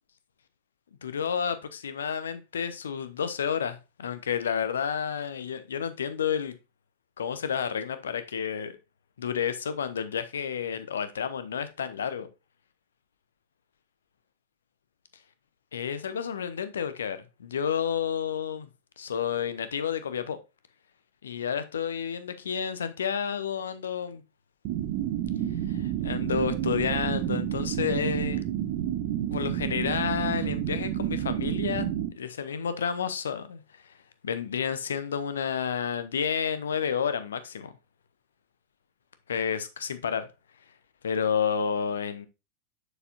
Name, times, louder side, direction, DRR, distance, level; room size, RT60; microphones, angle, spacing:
voice 1, 1.0-6.6 7.2-8.8 9.2-12.3 15.7-18.7 19.0-20.4 21.2-24.2 25.7-28.4 29.3-31.9 32.1-33.6 34.2-37.7 39.3-40.3 41.0-42.3, left 7 dB, 65° left, 0.8 m, -30 dB
sound 1, 24.6-32.1, right 11 dB, 45° right, 0.6 m, -30 dB
6.8 x 6.7 x 2.4 m
figure-of-eight pair, 90°, 0 cm